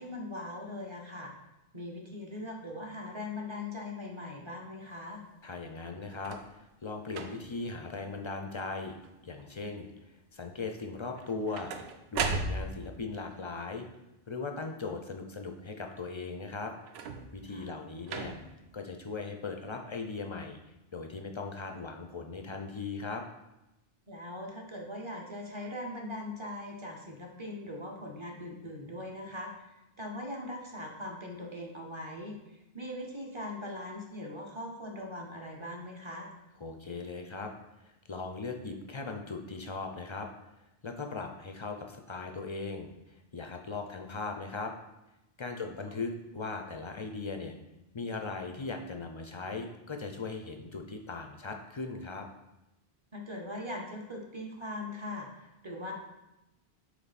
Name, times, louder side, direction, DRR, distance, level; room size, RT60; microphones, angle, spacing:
voice 1, 0.0-1.3 1.7-5.2 17.5-17.7 24.1-29.7 30.0-36.3 53.1-55.9, left 1 dB, 30° right, 0 dB, 0.9 m, -40 dB
voice 2, 5.4-9.0 9.2-9.9 10.3-13.8 14.3-16.7 17.3-18.4 18.7-20.6 20.9-23.2 36.6-37.5 37.8-40.3 40.8-44.7 45.4-47.5 47.9-52.3, left 3 dB, 45° left, 4 dB, 0.4 m, -39 dB
sound 1, 6.1-6.5 7.1-7.6 8.2-8.6 8.9-9.4 11.1-13.0 16.8-17.5 18.1-18.6 19.5-19.6, right 4 dB, 90° right, 0.8 m, -37 dB
7.6 x 3.2 x 4.1 m, 0.94 s
omnidirectional pair, 1.0 m